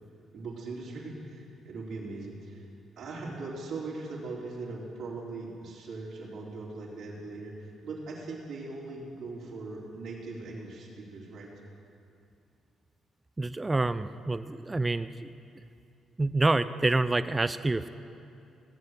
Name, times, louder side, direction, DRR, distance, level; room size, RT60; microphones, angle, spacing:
voice 1, 0.3-2.7 3.0-11.5, right 3 dB, 75° right, -4 dB, 3.6 m, -40 dB
voice 2, 13.4-15.3 16.2-17.9, right 2 dB, 20° right, 12 dB, 0.4 m, -27 dB
17.0 x 8.1 x 8.1 m, 2.6 s
cardioid pair, 90°, 0 cm